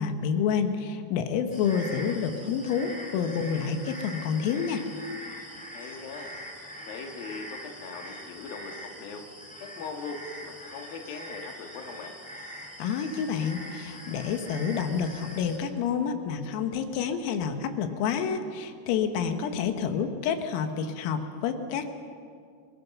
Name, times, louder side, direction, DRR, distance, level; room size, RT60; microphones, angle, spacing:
voice 1, 0.0-4.8 12.8-21.9, left 7 dB, 85° left, 7 dB, 4.1 m, -28 dB
sound 1, 1.5-15.6, equal, 5° left, 1.7 m, -43 dB
voice 2, 5.7-6.3 6.8-9.2 9.6-12.1, left 4 dB, 55° left, 3 dB, 3.0 m, -40 dB
29.0 x 20.5 x 6.1 m, 2.3 s
omnidirectional pair, 5.9 m